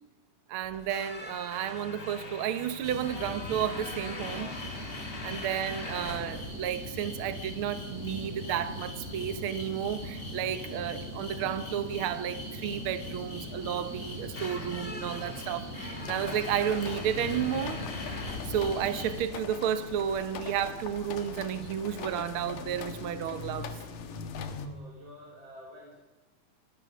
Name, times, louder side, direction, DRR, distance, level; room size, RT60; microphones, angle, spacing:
voice 1, 0.5-4.5 5.2-17.8 18.5-23.7, right 9 dB, 75° right, 1.2 m, -32 dB
sound 1, 0.6-19.5, left 2 dB, 25° left, 1.3 m, -44 dB
sound 2, 2.8-19.2, left 1 dB, 40° left, 7.0 m, -40 dB
sound 3, 16.0-24.7, left 5 dB, 70° left, 3.0 m, -41 dB
voice 2, 24.5-26.0, equal, 35° right, 3.8 m, -51 dB
29.5 x 16.0 x 6.1 m
omnidirectional pair, 4.1 m